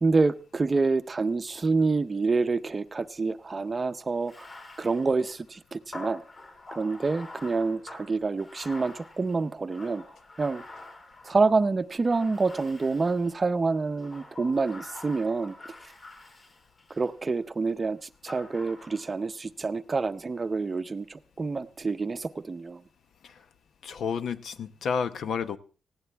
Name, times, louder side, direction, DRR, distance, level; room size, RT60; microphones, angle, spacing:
voice 1, 0.0-4.5 4.8-6.2 6.7-10.0 10.4-10.6 11.2-15.5 16.9-22.8, right 4 dB, 25° right, 0.7 m, -27 dB
Bathtub (filling or washing), 4.2-11.5 12.1-13.4 13.9-17.1 18.3-19.3, left 2 dB, 40° left, 4.5 m, -46 dB
voice 2, 23.8-25.6, left 6 dB, 70° left, 0.9 m, -31 dB
19.5 x 16.0 x 3.4 m
wide cardioid pair, 150°, 0 cm